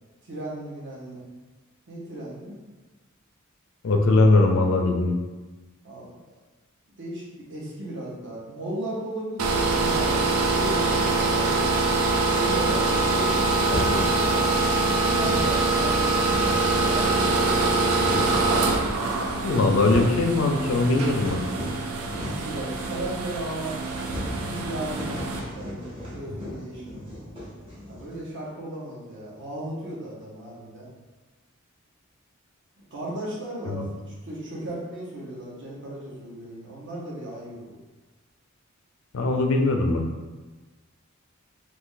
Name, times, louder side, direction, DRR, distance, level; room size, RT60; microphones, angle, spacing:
voice 1, 0.2-1.2 1.9-2.6 5.8-6.1 7.0-11.6 12.3-18.4 22.2-27.2 27.9-30.9 32.9-37.8, right 1 dB, 60° right, -4 dB, 0.9 m, -36 dB
voice 2, 3.8-5.1 19.4-21.4 33.7-33.9 39.1-40.0, left 2 dB, 65° left, 3 dB, 0.4 m, -20 dB
sound 1, 9.4-25.4, right 3 dB, 85° right, 0.4 m, -24 dB
sound 2, 13.6-14.2 14.8-14.9 15.1-15.6 16.0-16.9 17.6-18.5 19.3-19.4 19.6-20.2 20.6-22.6 22.9-23.0 23.3-23.4 23.8-28.3, left 1 dB, 25° right, 0.8 m, -35 dB
2.6 x 2.5 x 3.7 m, 1.2 s
head